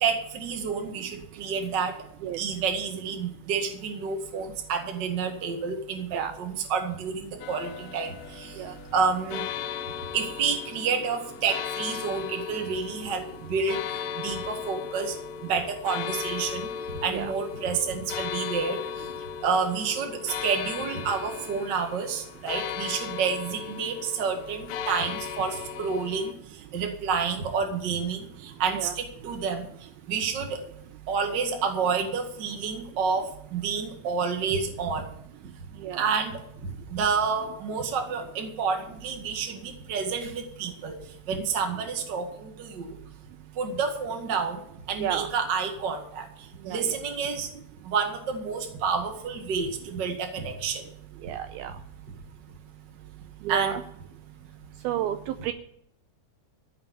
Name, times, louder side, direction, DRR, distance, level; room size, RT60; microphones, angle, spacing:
voice 1, 0.0-2.0 2.4-8.6 8.9-9.4 10.1-13.8 14.2-15.1 15.4-16.7 17.0-18.8 19.4-26.3 26.7-29.7 30.1-30.6 31.1-35.1 36.0-40.9 41.3-42.9 43.6-44.6 44.9-46.3 46.6-47.5 47.8-50.8 53.5-53.8, right 5 dB, 40° right, 4 dB, 1.6 m, -29 dB
sound 1, 7.4-26.3, left 8 dB, 75° left, 2.2 m, -37 dB
voice 2, 46.6-47.0 51.2-51.7 53.4-53.8 54.8-55.5, right 10 dB, 80° right, 8 dB, 2.3 m, -31 dB
15.0 x 5.6 x 9.5 m, 0.74 s
omnidirectional pair, 4.9 m